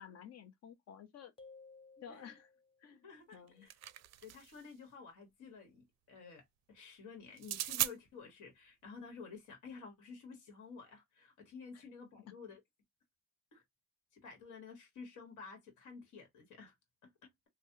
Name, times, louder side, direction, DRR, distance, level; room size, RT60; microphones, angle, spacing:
voice 1, 0.0-1.3 2.0-2.5 2.8-3.7 11.7-11.8, left 8 dB, 55° left, 0.8 m, -53 dB
sound 1, 1.4-2.9, left 4 dB, 20° left, 0.5 m, -57 dB
voice 2, 3.0-3.7 4.2-12.6 13.5-13.6 14.1-16.7 17.0-17.3, left 5 dB, 75° left, 1.4 m, -52 dB
sound 2, 3.3-4.6 7.4-7.9, right 13 dB, 60° right, 0.4 m, -38 dB
3.2 x 2.2 x 2.7 m
cardioid pair, 90°, 30 cm